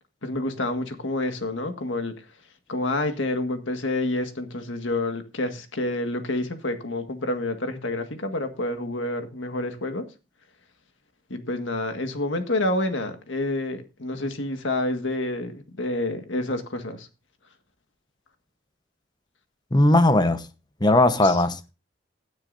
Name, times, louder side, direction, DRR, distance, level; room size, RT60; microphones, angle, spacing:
voice 1, 0.2-2.3 2.7-10.1 11.3-17.1 21.0-21.4, left 2 dB, 75° left, 1.8 m, -28 dB
voice 2, 19.7-20.4 20.8-21.7, left 1 dB, 20° left, 0.9 m, -18 dB
17.0 x 9.6 x 2.6 m
head